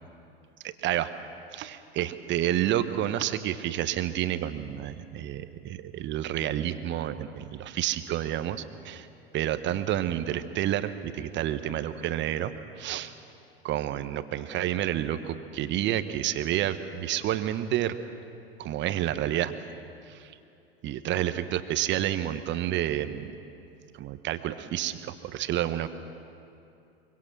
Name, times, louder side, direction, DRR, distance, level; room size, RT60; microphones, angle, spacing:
voice 1, 0.6-1.1 1.5-9.1 9.3-13.1 13.6-18.0 18.6-19.5 20.1-20.3 20.8-23.3 23.9-25.9, right 12 dB, 40° right, 11 dB, 1.2 m, -29 dB
24.5 x 23.5 x 6.3 m, 2.6 s
figure-of-eight pair, 80°, 30 cm